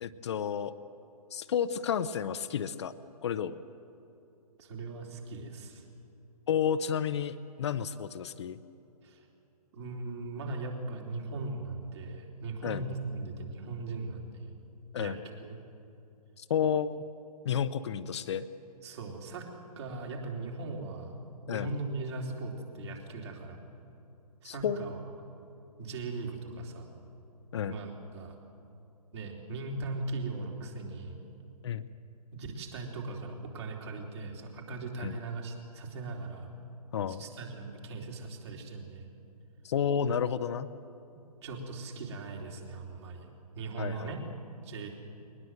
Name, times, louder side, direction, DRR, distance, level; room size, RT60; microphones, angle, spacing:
voice 1, 0.0-0.7 1.3-2.9 3.2-3.6 6.5-8.6 12.6-12.8 14.9-15.2 16.4-17.0 17.4-18.5 21.5-21.7 24.4-25.0 27.5-27.8 31.6-31.9 35.0-35.2 36.9-37.2 39.6-40.7 43.8-44.1, left 8 dB, 45° left, 11 dB, 0.7 m, -31 dB
voice 2, 4.6-5.8 9.0-9.3 9.7-14.5 15.0-15.6 18.8-19.5 19.8-21.2 21.5-23.6 24.4-25.0 25.8-26.9 27.7-28.4 29.1-31.2 32.3-36.5 37.1-39.1 41.4-44.2 44.6-44.9, right 3 dB, 45° right, 0 dB, 3.6 m, -39 dB
21.0 x 19.5 x 7.9 m, 2.8 s
figure-of-eight pair, 135°, 20 cm